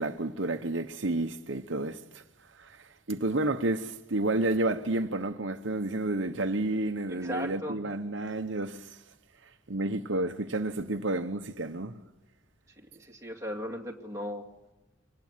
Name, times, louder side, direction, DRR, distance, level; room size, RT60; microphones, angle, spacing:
voice 1, 0.0-2.2 2.5-9.0 9.4-12.0, right 2 dB, 65° right, 1.0 m, -31 dB
voice 2, 7.1-7.8 12.9-14.5, equal, 15° right, 2.4 m, -37 dB
25.5 x 19.5 x 9.6 m
head